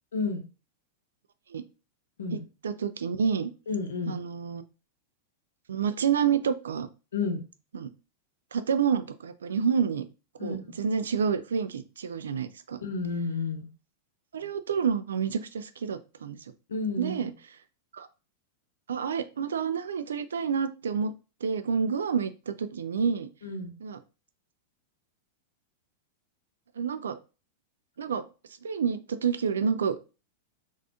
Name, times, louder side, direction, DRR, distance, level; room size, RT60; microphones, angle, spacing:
voice 1, 2.3-3.5 4.1-4.6 5.7-6.9 7.7-7.9 8.5-10.1 10.4-12.8 14.3-16.4 17.0-17.3 17.9-18.1 18.9-21.1 21.4-23.3 23.8-24.0 26.8-27.2 28.0-28.2 28.6-30.0, right 6 dB, 65° right, 11 dB, 0.3 m, -28 dB
voice 2, 3.7-4.1 7.1-7.4 10.4-10.8 12.8-13.7 16.7-17.3 23.4-23.8, left 4 dB, 65° left, 5 dB, 0.7 m, -31 dB
4.0 x 2.4 x 2.8 m, 0.32 s
figure-of-eight pair, 90°, 0 cm